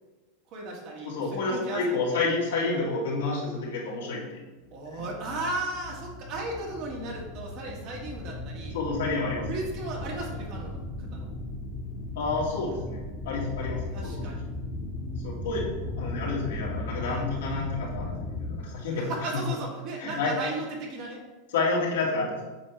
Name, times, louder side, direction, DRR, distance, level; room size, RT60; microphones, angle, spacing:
voice 1, 0.5-2.1 4.7-8.8 9.5-10.8 11.1-11.3 13.9-14.4 18.9-21.2, right 2 dB, 55° right, -1 dB, 2.0 m, -35 dB
voice 2, 1.0-4.4 4.9-5.0 8.7-9.5 12.2-13.8 14.2-14.3 15.2-15.6 16.0-19.1 19.3-19.4 20.0-20.3 21.5-22.3, left 3 dB, 85° left, -4 dB, 2.2 m, -29 dB
sound 1, 4.7-18.6, left 2 dB, 25° left, 1.4 m, -36 dB
7.9 x 4.5 x 3.4 m, 1.2 s
hypercardioid pair, 115°, 0 cm